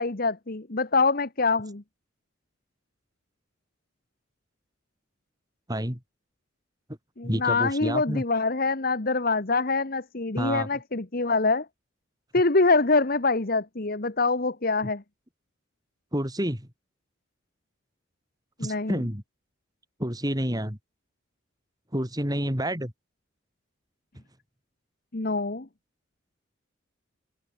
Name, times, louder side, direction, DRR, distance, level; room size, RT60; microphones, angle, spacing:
voice 1, 0.0-1.8 7.2-11.7 12.3-15.0 18.6-19.0 25.1-25.7, left 3 dB, 50° left, 1.4 m, -25 dB
voice 2, 5.7-6.0 7.2-8.2 10.4-10.7 16.1-16.7 18.6-19.2 20.0-20.8 21.9-22.9, equal, 20° right, 5.7 m, -29 dB
head